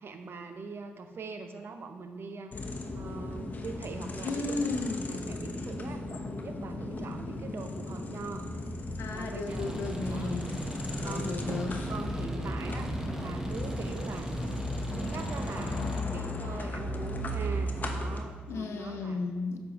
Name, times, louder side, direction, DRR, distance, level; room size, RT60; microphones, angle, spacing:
voice 1, 0.0-4.7 5.1-8.5 9.1-9.8 10.1-10.4 11.0-11.4 11.9-14.3 14.9-15.8 16.1-19.2, right 4 dB, 55° right, 7 dB, 0.7 m, -42 dB
sound 1, 2.5-18.3, left 1 dB, 40° left, 0.8 m, -36 dB
voice 2, 4.2-5.1 9.0-10.5 11.0-11.8 18.5-19.6, left 3 dB, 70° left, 5 dB, 0.6 m, -34 dB
sound 2, 9.5-16.0, right 1 dB, 10° right, 1.0 m, -37 dB
sound 3, 11.5-12.5 12.8-15.2 15.6-16.5, right 1 dB, 70° right, 1.4 m, -45 dB
8.4 x 5.3 x 3.0 m, 1.4 s
supercardioid pair, 50°, 5 cm